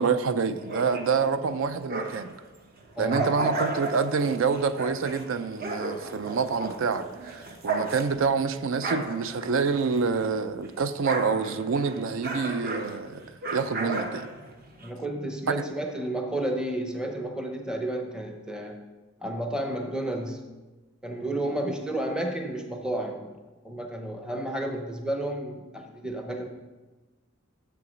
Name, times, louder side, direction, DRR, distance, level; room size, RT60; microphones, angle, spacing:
voice 1, 0.0-2.3 3.0-14.3 15.5-15.6, right 5 dB, 70° right, 12 dB, 0.5 m, -27 dB
sound 1, 0.6-2.4 2.8-10.4 10.6-14.9, right 3 dB, 45° right, 0.9 m, -34 dB
voice 2, 3.0-3.5 14.8-18.8 19.2-20.4 21.0-23.3 23.6-26.5, right 1 dB, 5° right, 3 dB, 0.6 m, -31 dB
6.9 x 6.9 x 5.1 m, 1.2 s
head